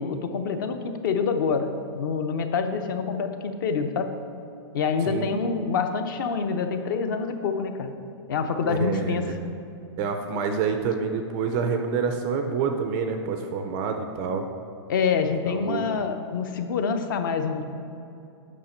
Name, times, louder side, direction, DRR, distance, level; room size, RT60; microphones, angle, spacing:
voice 1, 0.0-1.7 1.9-4.1 4.7-7.9 8.3-9.3 14.9-17.6, left 5 dB, 45° left, 7 dB, 0.6 m, -26 dB
voice 2, 8.7-9.3 10.0-14.5 15.5-15.9, right 5 dB, 20° right, 5 dB, 0.3 m, -27 dB
8.5 x 5.8 x 4.3 m, 2.7 s
hypercardioid pair, 165°, 15 cm